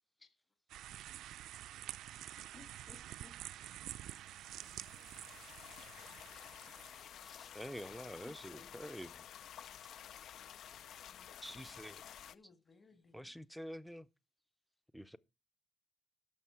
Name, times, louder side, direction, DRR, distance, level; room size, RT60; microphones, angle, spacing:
sound 1, 0.7-7.0, right 13 dB, 80° right, 0.4 m, -49 dB
voice 1, 1.3-3.6 8.2-9.1 12.3-13.3, left 3 dB, 25° left, 1.7 m, -63 dB
voice 2, 3.7-6.9 10.8-12.0, left 3 dB, 85° left, 4.4 m, -75 dB
sound 2, 4.0-12.4, left 9 dB, 65° left, 0.4 m, -53 dB
voice 3, 7.2-9.1 11.4-12.0 13.1-14.1 14.9-15.2, equal, ahead, 0.5 m, -47 dB
11.5 x 7.2 x 4.7 m
cardioid pair, 120°, 0 cm